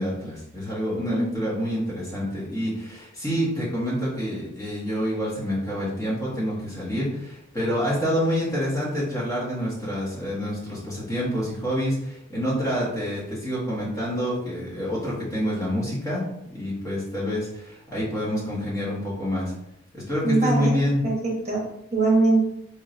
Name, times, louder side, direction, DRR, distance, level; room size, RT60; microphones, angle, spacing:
voice 1, 0.0-16.2 16.5-19.5 19.9-21.0, equal, 15° left, -8 dB, 1.3 m, -27 dB
voice 2, 20.2-20.7 21.0-21.6 21.9-22.4, right 3 dB, 30° right, -4 dB, 1.2 m, -21 dB
3.7 x 3.1 x 2.6 m, 0.81 s
head